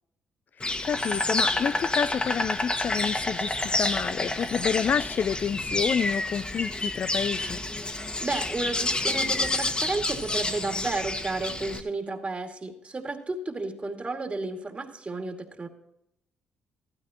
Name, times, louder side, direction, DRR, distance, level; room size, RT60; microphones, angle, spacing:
Insect, 0.6-11.8, left 2 dB, 25° left, 1.5 m, -29 dB
voice 1, 0.8-7.6, left 7 dB, 50° left, 0.3 m, -29 dB
voice 2, 8.2-15.7, right 3 dB, 35° right, 2.4 m, -32 dB
15.5 x 13.0 x 3.0 m
supercardioid pair, 55°, 4 cm